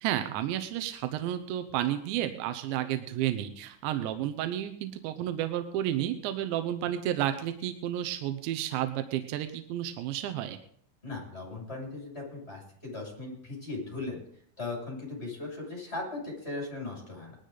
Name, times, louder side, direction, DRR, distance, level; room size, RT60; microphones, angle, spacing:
voice 1, 0.0-10.6, right 12 dB, 80° right, 8 dB, 2.7 m, -31 dB
voice 2, 11.0-14.2 14.6-17.4, left 3 dB, 10° left, -3 dB, 7.0 m, -38 dB
20.0 x 13.0 x 4.0 m, 0.63 s
omnidirectional pair, 6.0 m